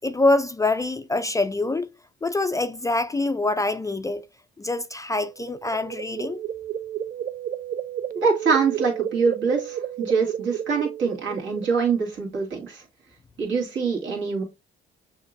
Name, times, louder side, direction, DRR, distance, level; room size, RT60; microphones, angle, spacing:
voice 1, 0.0-1.9 2.2-4.2 4.6-6.4, left 2 dB, 15° left, 0.3 m, -25 dB
sound 1, 5.4-11.9, right 10 dB, 50° right, 0.4 m, -32 dB
voice 2, 8.2-12.8 13.4-14.4, right 5 dB, 70° right, 2.2 m, -24 dB
6.4 x 2.9 x 2.5 m
cardioid pair, 90°, 20 cm